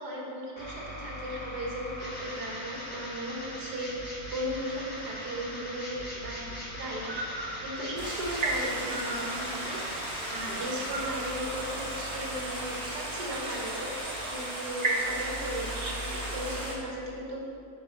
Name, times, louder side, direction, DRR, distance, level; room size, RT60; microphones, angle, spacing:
voice 1, 0.0-7.2 7.6-10.0 10.3-13.9 14.2-17.4, equal, 90° right, -3 dB, 2.0 m, -36 dB
sound 1, 0.6-16.6, left 1 dB, 60° left, 2.4 m, -41 dB
sound 2, 6.9-16.3, right 2 dB, 45° right, 0.5 m, -37 dB
Stream, 8.0-16.7, right 1 dB, 70° right, 1.9 m, -37 dB
6.4 x 5.6 x 5.8 m, 2.4 s
omnidirectional pair, 1.7 m